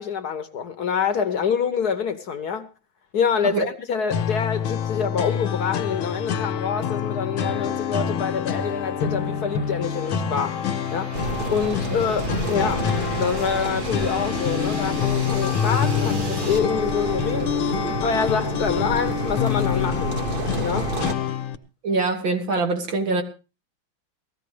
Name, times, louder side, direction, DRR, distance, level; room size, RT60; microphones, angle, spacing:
voice 1, 0.0-2.7 3.1-10.6 10.9-17.5 18.0-20.2 20.6-20.9, left 6 dB, 60° left, 1.2 m, -26 dB
sound 1, 4.1-21.6, left 8 dB, 80° left, 1.9 m, -27 dB
sound 2, 7.6-16.6, right 3 dB, 50° right, 2.7 m, -41 dB
sound 3, 11.1-21.1, right 2 dB, 30° right, 1.1 m, -30 dB
voice 2, 21.8-23.2, right 3 dB, 70° right, 2.6 m, -23 dB
19.0 x 14.5 x 3.3 m
omnidirectional pair, 2.2 m